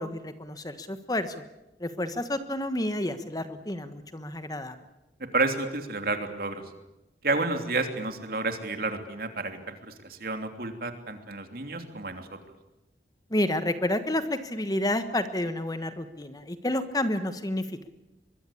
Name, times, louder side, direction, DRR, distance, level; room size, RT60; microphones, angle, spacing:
voice 1, 0.0-1.3 1.8-4.7 13.3-17.9, left 1 dB, 20° left, 11 dB, 1.3 m, -30 dB
voice 2, 5.3-6.6 7.2-12.3, right 3 dB, 55° right, 7 dB, 3.1 m, -30 dB
24.0 x 22.0 x 8.6 m, 0.94 s
head